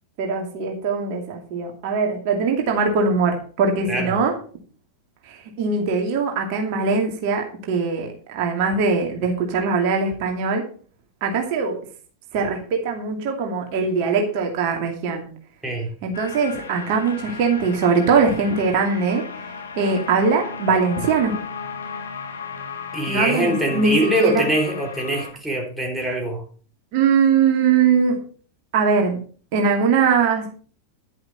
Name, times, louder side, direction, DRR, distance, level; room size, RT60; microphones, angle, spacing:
voice 1, 0.2-4.4 5.3-8.1 8.3-10.6 11.2-11.8 12.3-15.3 16.0-19.2 19.8-21.4 23.1-24.5 26.9-28.2 28.7-29.2 29.5-30.5, right 5 dB, 45° right, 2.5 m, -21 dB
sound 1, 16.1-25.3, left 5 dB, 70° left, 2.1 m, -35 dB
voice 2, 22.9-26.4, right 1 dB, 5° right, 3.4 m, -23 dB
11.0 x 10.5 x 4.3 m
figure-of-eight pair, 90°, 0 cm